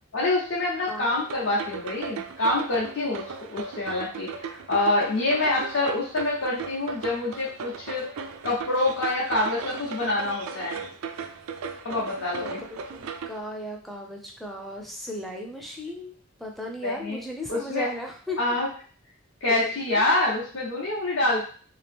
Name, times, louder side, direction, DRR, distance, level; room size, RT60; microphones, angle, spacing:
voice 1, 0.1-3.2 3.5-4.3 4.7-8.1 8.4-10.8 11.8-12.6 16.8-17.2 17.5-17.9 18.4-18.7 19.4-21.4, left 2 dB, 65° left, -6 dB, 0.8 m, -26 dB
sound 1, 1.1-13.4, right 5 dB, 90° right, 0.4 m, -37 dB
voice 2, 12.4-16.1 16.4-18.4 19.5-20.0, left 1 dB, ahead, 0 dB, 0.4 m, -36 dB
2.8 x 2.8 x 3.4 m, 0.43 s
head